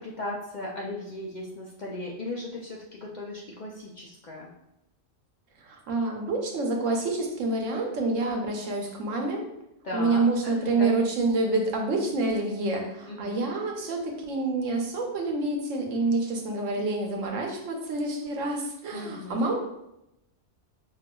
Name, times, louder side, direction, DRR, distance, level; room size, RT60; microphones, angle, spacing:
voice 1, 0.0-4.5 9.8-10.9 13.1-13.4 18.9-19.5, left 2 dB, 60° left, -3 dB, 0.4 m, -37 dB
voice 2, 5.6-9.4 9.9-19.6, right 2 dB, 90° right, 2 dB, 1.1 m, -27 dB
5.4 x 2.3 x 2.2 m, 0.86 s
omnidirectional pair, 1.3 m